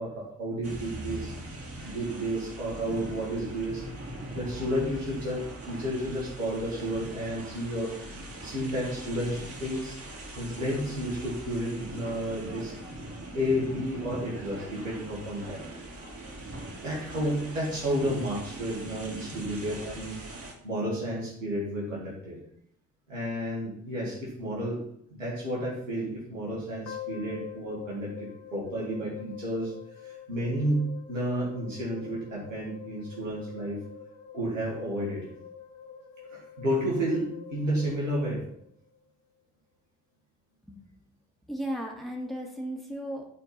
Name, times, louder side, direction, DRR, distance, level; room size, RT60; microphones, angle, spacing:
voice 1, 0.0-1.3 1.8-3.8 4.3-7.9 8.4-10.0 10.4-12.8 13.3-15.6 16.8-20.2 20.6-22.4 23.1-24.8 25.1-29.7 30.0-33.8 34.3-35.2 36.3-38.4, equal, 90° right, -5 dB, 2.2 m, -31 dB
sound 1, 0.6-20.5, right 1 dB, 35° right, 3.0 m, -41 dB
sound 2, 26.9-39.1, left 9 dB, 70° left, 1.0 m, -46 dB
voice 2, 41.5-43.3, equal, ahead, 0 dB, 2.2 m, -35 dB
11.0 x 4.5 x 4.2 m, 0.70 s
figure-of-eight pair, 45°, 37 cm